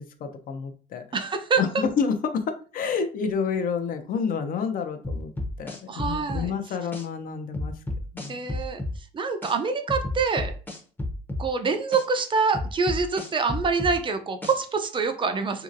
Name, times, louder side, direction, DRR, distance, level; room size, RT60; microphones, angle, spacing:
voice 1, 0.0-1.0 1.6-5.3 5.6-7.7 8.1-8.4, left 6 dB, 55° left, 7 dB, 0.5 m, -29 dB
voice 2, 1.1-1.6 5.9-6.5 8.3-8.8 9.1-10.5 11.4-15.6, right 4 dB, 30° right, 7 dB, 0.4 m, -25 dB
sound 1, 5.0-6.5 6.9-7.0 7.5-9.0 9.4-9.5 9.9-11.5 11.9-12.0 12.5-14.0 14.4-14.6, left 1 dB, 10° left, 0.6 m, -31 dB
2.9 x 2.7 x 2.5 m, 0.39 s
cardioid pair, 110°, 17 cm